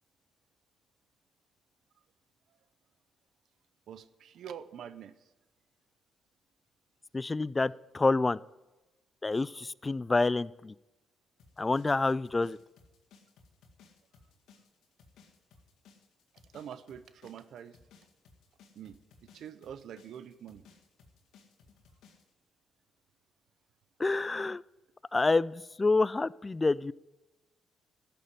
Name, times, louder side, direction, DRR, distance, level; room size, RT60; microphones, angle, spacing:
voice 1, 3.9-5.1 16.5-17.8 18.8-19.0 19.3-20.6, right 9 dB, 70° right, 14 dB, 0.6 m, -45 dB
voice 2, 7.1-8.4 9.2-10.7 11.6-12.6 24.0-24.6 25.1-26.9, left 3 dB, 20° left, 20 dB, 0.3 m, -28 dB
sound 1, 11.4-22.3, left 5 dB, 80° left, 2.0 m, -60 dB
12.5 x 6.9 x 9.5 m, 1.1 s
cardioid pair, 90°, 0 cm